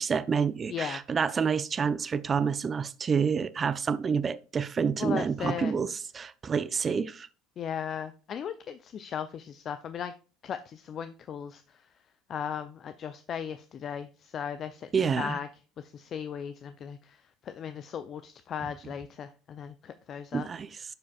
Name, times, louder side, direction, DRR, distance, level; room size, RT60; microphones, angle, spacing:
voice 1, 0.0-7.3 14.9-15.4 20.3-20.8, right 6 dB, 35° right, 0.5 m, -28 dB
voice 2, 5.0-5.7 7.6-10.1 10.4-11.8 12.3-15.5 15.8-20.5, left 8 dB, 45° left, 0.4 m, -37 dB
11.5 x 4.8 x 2.3 m
hypercardioid pair, 70°, 0 cm